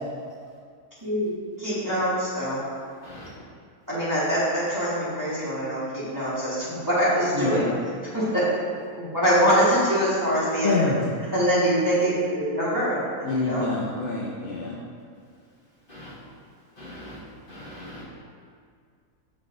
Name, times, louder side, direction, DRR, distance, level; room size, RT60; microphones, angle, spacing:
voice 1, 1.0-1.3 1.6-2.6 3.9-7.6 8.1-8.4 9.0-10.9 11.3-13.7, equal, 15° right, -10 dB, 1.4 m, -24 dB
voice 2, 7.3-7.8 10.6-11.0 13.2-14.7, left 3 dB, 65° left, -3 dB, 0.5 m, -26 dB
voice 3, 16.8-17.2 17.5-18.0, left 1 dB, 35° left, -8 dB, 1.7 m, -41 dB
6.6 x 4.0 x 3.7 m, 2.1 s
omnidirectional pair, 1.6 m